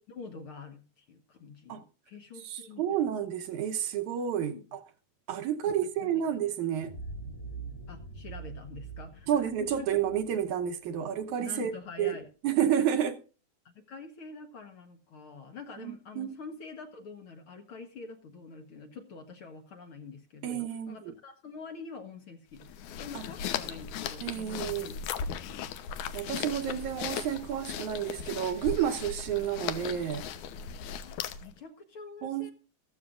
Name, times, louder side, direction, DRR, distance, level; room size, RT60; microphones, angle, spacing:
voice 1, 0.1-2.8 4.5-4.6 5.6-5.7 6.0-6.4 7.9-9.9 11.0-11.1 11.4-12.3 13.7-22.7 23.0-25.7 31.0-32.5, left 5 dB, 55° left, 1.7 m, -46 dB
voice 2, 2.4-4.8 5.3-7.0 9.3-11.7 12.0-12.2 12.4-13.2 15.8-16.3 20.4-21.1 23.1-23.2 24.2-24.9 26.1-30.2 32.2-32.5, right 9 dB, 70° right, 2.3 m, -30 dB
sound 1, 6.8-11.5, right 4 dB, 35° left, 2.0 m, -44 dB
sound 2, 22.6-31.6, left 7 dB, 75° left, 2.3 m, -37 dB
14.5 x 14.0 x 2.5 m
omnidirectional pair, 3.6 m